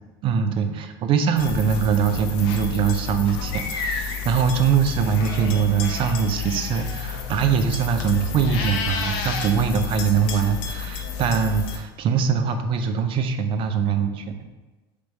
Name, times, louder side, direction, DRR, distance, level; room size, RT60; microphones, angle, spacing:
voice 1, 0.2-14.2, right 6 dB, 40° right, 7 dB, 0.4 m, -22 dB
sound 1, 1.4-11.8, left 6 dB, 65° left, 0.7 m, -30 dB
3.3 x 3.2 x 4.0 m, 1.2 s
supercardioid pair, 105°, 13 cm